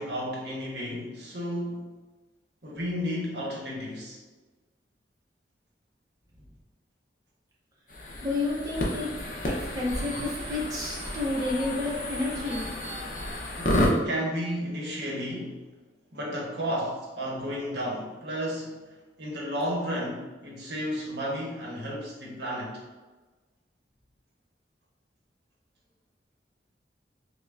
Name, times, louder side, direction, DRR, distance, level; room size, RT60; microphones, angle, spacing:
voice 1, 0.0-1.9 2.6-4.2 13.6-15.6 16.1-22.8, equal, 75° right, -3 dB, 0.9 m, -33 dB
sound 1, 7.9-13.9, left 1 dB, 45° left, 0.6 m, -31 dB
voice 2, 8.2-9.1 9.4-12.7, left 2 dB, 20° right, -5 dB, 0.6 m, -30 dB
5.5 x 2.1 x 2.4 m, 1.3 s
head